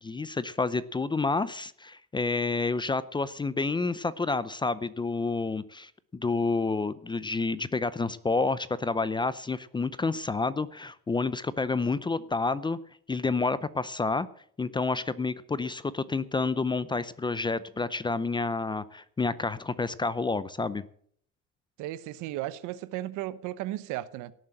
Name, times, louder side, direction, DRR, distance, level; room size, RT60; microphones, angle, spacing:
voice 1, 0.0-12.8 13.1-14.3 14.6-20.8, left 3 dB, 15° left, 0.5 m, -29 dB
voice 2, 21.8-24.3, right 15 dB, 90° right, 1.0 m, -35 dB
17.0 x 7.7 x 7.7 m
cardioid pair, 130°, 29 cm